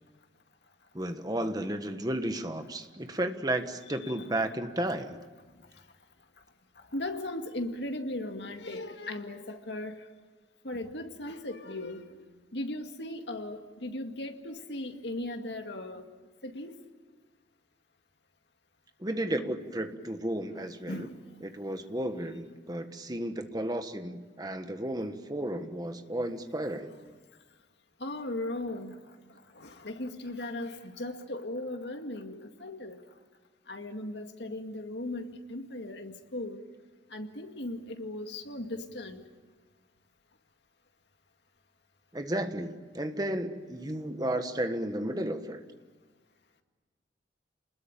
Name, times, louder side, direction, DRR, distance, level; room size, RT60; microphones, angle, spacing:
voice 1, 0.9-5.2 19.0-21.1 21.4-26.9 42.1-45.6, right 1 dB, 20° right, 8 dB, 1.5 m, -33 dB
voice 2, 6.9-10.0 10.6-12.0 12.5-16.0 16.4-16.8 20.5-21.1 28.0-29.0 29.6-33.0 33.7-36.6 37.1-39.2, left 1 dB, 70° left, 5 dB, 2.1 m, -37 dB
28.5 x 20.5 x 9.0 m, 1.4 s
head